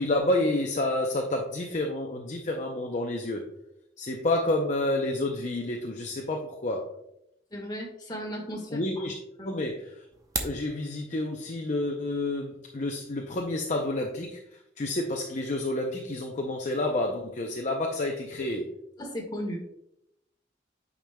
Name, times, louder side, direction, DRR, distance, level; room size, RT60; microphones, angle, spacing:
voice 1, 0.0-3.5 4.0-6.9 8.7-9.2 9.4-9.9 10.4-14.4 14.8-18.7, left 2 dB, 40° left, 1 dB, 0.5 m, -29 dB
voice 2, 7.5-9.1 9.4-9.6 19.0-19.7, equal, 25° left, 0 dB, 1.5 m, -36 dB
sound 1, 10.1-10.7, right 3 dB, 20° right, 0.7 m, -33 dB
9.1 x 5.1 x 2.2 m, 0.79 s
head